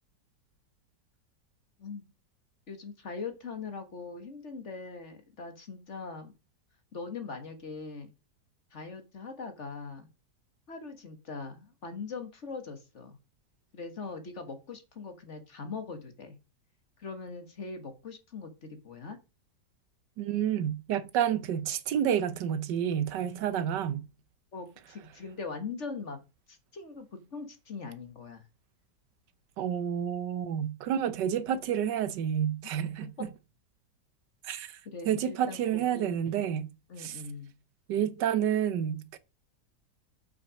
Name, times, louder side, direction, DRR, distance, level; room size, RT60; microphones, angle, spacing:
voice 1, 2.7-6.3 6.9-8.1 8.7-10.1 10.7-13.2 13.7-16.4 17.0-19.2 24.5-26.2 26.5-28.4 32.6-32.7 33.0-33.3 34.9-36.1 36.9-37.5, left 4 dB, 45° left, 1.7 m, -41 dB
voice 2, 20.2-24.1 29.6-33.1 34.4-34.8 35.1-36.7 37.0-37.2 37.9-39.2, right 9 dB, 80° right, 1.4 m, -29 dB
7.4 x 6.0 x 6.3 m
omnidirectional pair, 1.8 m